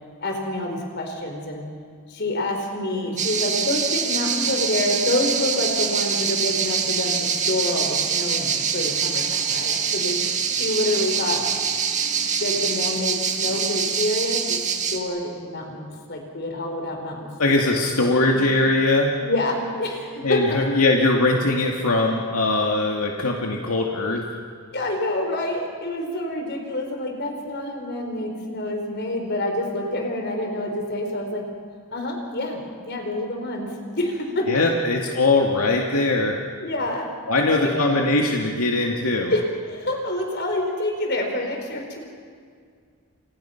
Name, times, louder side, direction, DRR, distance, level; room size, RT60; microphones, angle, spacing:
voice 1, 0.2-1.6 2.1-10.2 10.5-11.4 12.4-17.3 18.0-18.2 19.2-20.6 24.7-31.4 31.9-34.5 36.6-37.9 39.3-42.0, left 1 dB, 50° left, 3 dB, 4.8 m, -27 dB
sound 1, 3.2-15.0, right 6 dB, 35° right, 2.0 m, -24 dB
voice 2, 17.4-19.1 20.2-24.2 34.5-36.4 37.3-39.3, left 2 dB, 80° left, 0 dB, 2.2 m, -21 dB
29.5 x 28.0 x 5.9 m, 2.1 s
head